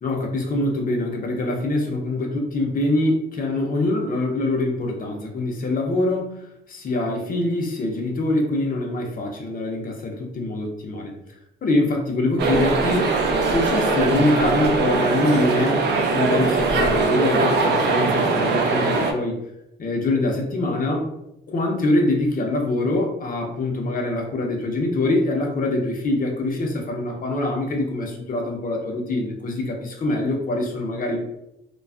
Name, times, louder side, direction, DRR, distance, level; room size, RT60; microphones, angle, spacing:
voice 1, 0.0-6.4 6.7-11.2 11.6-13.1 13.5-15.8 16.1-19.4 19.8-21.1 21.5-31.2, left 2 dB, 45° left, 1 dB, 0.6 m, -24 dB
sound 1, 12.4-19.1, right 3 dB, 60° right, 0.5 m, -21 dB
2.3 x 2.3 x 2.4 m, 0.83 s
cardioid pair, 90°, 20 cm